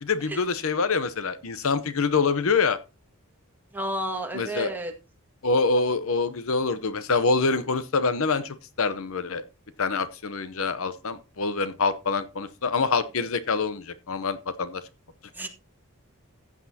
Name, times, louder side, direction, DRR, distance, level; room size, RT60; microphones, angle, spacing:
voice 1, 0.0-2.8 4.3-4.7 5.4-9.4 9.8-14.8, left 4 dB, 70° left, 0.8 m, -25 dB
voice 2, 3.7-4.9 15.3-15.5, right 1 dB, 10° right, 1.9 m, -31 dB
15.0 x 8.5 x 2.8 m
head